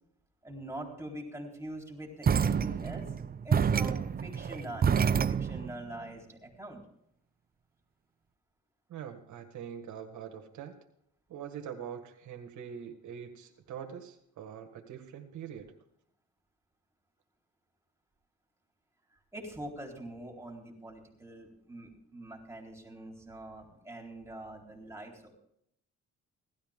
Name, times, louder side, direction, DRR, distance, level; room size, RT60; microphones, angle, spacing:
voice 1, 0.4-6.8 19.3-25.3, right 1 dB, 10° right, 0 dB, 4.0 m, -44 dB
sound 1, 2.2-5.7, right 7 dB, 30° right, 0.6 m, -28 dB
voice 2, 8.9-10.7 11.3-15.7, right 8 dB, 75° right, 4 dB, 1.7 m, -43 dB
17.0 x 13.0 x 3.7 m, 0.74 s
cardioid pair, 90°, 30 cm